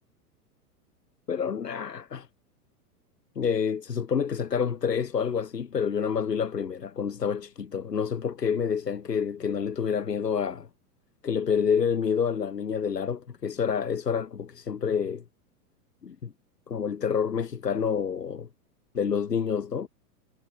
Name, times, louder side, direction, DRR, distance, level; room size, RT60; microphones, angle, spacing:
voice 1, 1.3-2.3 3.4-10.7 11.2-15.2 16.0-16.3 16.7-18.5 18.9-19.9, left 7 dB, 90° left, 3.9 m, -28 dB
hypercardioid pair, 115°, 47 cm